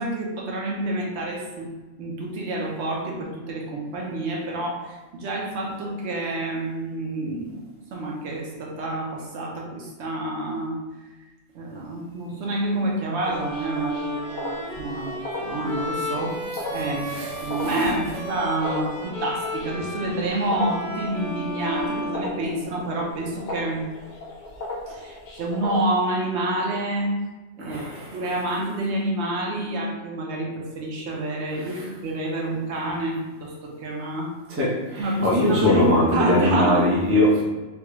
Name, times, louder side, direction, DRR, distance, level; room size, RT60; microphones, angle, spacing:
voice 1, 0.0-1.7 2.0-7.6 7.9-10.8 11.5-15.1 15.4-16.4 16.7-23.8 24.9-27.1 27.6-27.9 28.1-34.3 35.0-36.8, right 1 dB, 70° right, -2 dB, 0.9 m, -28 dB
sound 1, 13.2-25.8, left 2 dB, 50° left, 0.6 m, -37 dB
Bowed string instrument, 13.2-22.9, equal, 40° right, 1.1 m, -34 dB
voice 2, 17.1-17.9 27.6-28.2 31.6-31.9 34.5-37.4, left 1 dB, 15° right, -5 dB, 0.5 m, -22 dB
3.3 x 2.3 x 3.0 m, 1.2 s
omnidirectional pair, 1.3 m